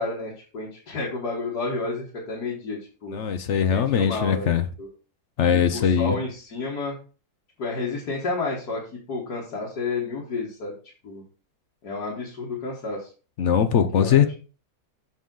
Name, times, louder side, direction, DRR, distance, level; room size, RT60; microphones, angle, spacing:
voice 1, 0.0-3.2 3.7-4.9 5.5-7.0 7.6-8.8 9.1-10.7 11.0-11.2 11.8-13.1 13.9-14.2, left 3 dB, 75° left, -3 dB, 2.1 m, -31 dB
voice 2, 3.1-4.7 5.4-6.2 13.4-14.3, left 8 dB, 55° left, 10 dB, 0.9 m, -21 dB
7.5 x 5.5 x 3.9 m, 0.36 s
omnidirectional pair, 1.7 m